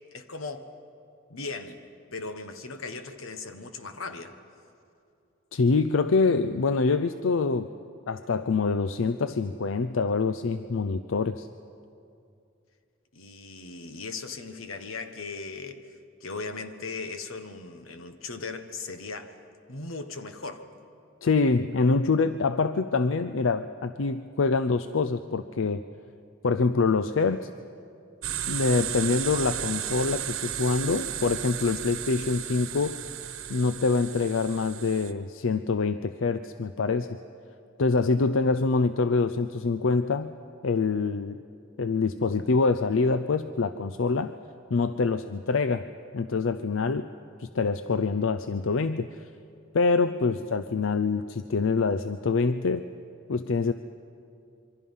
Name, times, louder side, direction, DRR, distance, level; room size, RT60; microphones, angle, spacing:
voice 1, 0.1-0.7 1.3-1.8 2.1-4.3 13.1-15.9 16.2-19.4 19.7-20.7, left 3 dB, 90° left, 8 dB, 1.4 m, -38 dB
voice 2, 5.5-7.7 8.1-11.5 21.2-25.8 26.4-27.5 28.5-33.0 33.5-37.2 37.8-40.3 40.6-41.4 41.8-44.3 44.7-45.8 46.1-47.1 47.4-49.1 49.7-52.8 53.3-53.7, left 4 dB, 70° left, 11 dB, 0.5 m, -25 dB
sound 1, 28.2-35.1, right 10 dB, 90° right, 1.1 m, -34 dB
26.5 x 24.0 x 5.6 m, 2.5 s
head